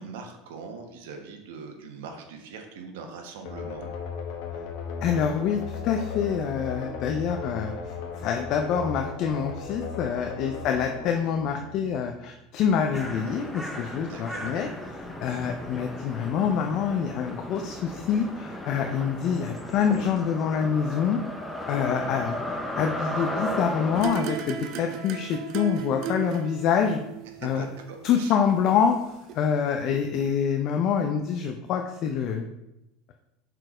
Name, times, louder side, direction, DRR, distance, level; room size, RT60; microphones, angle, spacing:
voice 1, 0.0-3.9 10.6-10.9 14.1-14.5 21.8-22.1 27.4-28.4, right 5 dB, 80° right, 3 dB, 1.1 m, -42 dB
sound 1, 3.5-12.1, left 5 dB, 65° left, 1.3 m, -36 dB
voice 2, 5.0-14.7 15.2-21.2 21.7-27.0 27.4-27.7 28.0-29.0 29.3-32.5, left 7 dB, 45° left, 4 dB, 0.5 m, -26 dB
sound 2, 12.9-24.0, equal, 5° left, 0.7 m, -35 dB
sound 3, 23.9-29.0 29.3-29.4, right 9 dB, 45° right, 0.7 m, -36 dB
6.2 x 4.5 x 4.9 m, 0.90 s
supercardioid pair, 155°, 0 cm